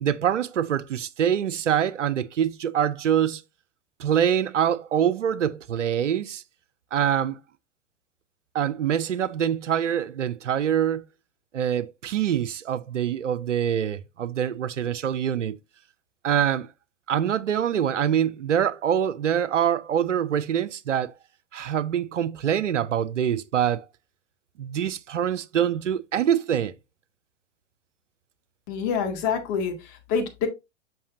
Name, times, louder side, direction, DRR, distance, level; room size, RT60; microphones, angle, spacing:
voice 1, 0.0-3.4 4.0-6.4 6.9-7.4 8.5-11.0 11.5-15.6 16.2-16.7 17.1-21.1 21.5-23.8 24.6-26.7, right 9 dB, 80° right, 0.6 m, -25 dB
voice 2, 28.7-30.5, left 6 dB, 40° left, 2.0 m, -27 dB
7.0 x 5.9 x 2.6 m
figure-of-eight pair, 100°, 36 cm